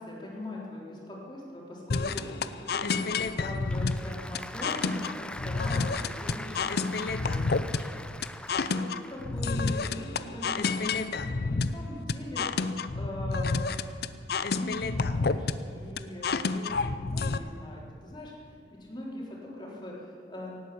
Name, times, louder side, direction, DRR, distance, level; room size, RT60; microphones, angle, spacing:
voice 1, 0.0-13.5 14.5-20.6, left 1 dB, 25° left, -4 dB, 3.7 m, -41 dB
sound 1, 1.9-17.4, left 4 dB, 60° left, 0.6 m, -29 dB
Applause / Crowd, 3.1-9.5, left 1 dB, 5° left, 0.3 m, -43 dB
18.0 x 9.0 x 8.4 m, 2.4 s
head